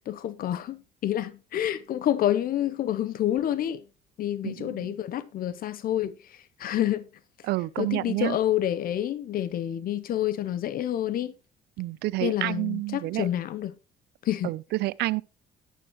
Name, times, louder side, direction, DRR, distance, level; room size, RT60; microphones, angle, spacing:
voice 1, 0.0-3.8 4.2-7.1 7.8-11.3 12.2-13.7 14.2-14.5, left 11 dB, 60° left, 0.7 m, -28 dB
voice 2, 4.4-5.0 7.4-8.4 11.8-13.3 14.4-15.2, right 19 dB, 75° right, 0.5 m, -29 dB
11.0 x 9.2 x 3.1 m
cardioid pair, 110°, 17 cm